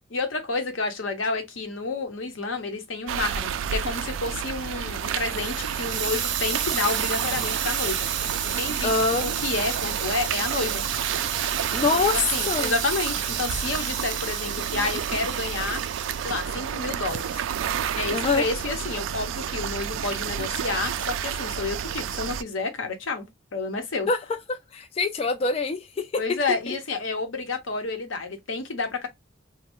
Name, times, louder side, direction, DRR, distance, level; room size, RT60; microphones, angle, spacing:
voice 1, 0.1-8.1 8.5-8.9 9.2-10.8 11.9-15.8 16.2-17.4 17.9-23.3 23.5-24.1 26.2-29.1, left 3 dB, 85° left, 0.8 m, -30 dB
sound 1, 3.1-22.4, right 8 dB, 80° right, 0.3 m, -30 dB
Hiss, 4.8-16.5 17.1-17.4, right 8 dB, 60° right, 0.7 m, -32 dB
voice 2, 8.8-9.3 11.7-12.1 12.5-12.7 18.1-18.4 24.1-24.2 24.5-26.1 26.7-26.8, left 3 dB, 30° left, 0.3 m, -24 dB
3.1 x 2.1 x 2.9 m
head